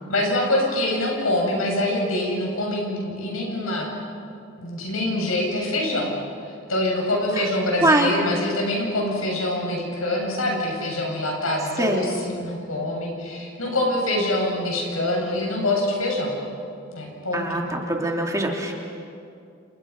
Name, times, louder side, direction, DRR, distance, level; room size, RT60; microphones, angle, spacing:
voice 1, 0.1-4.2 4.6-6.2 6.4-16.4 16.9-17.6, left 1 dB, 80° left, 0 dB, 7.6 m, -25 dB
voice 2, 17.3-18.7, right 1 dB, 15° right, 0 dB, 2.7 m, -22 dB
30.0 x 30.0 x 6.0 m, 2.5 s
head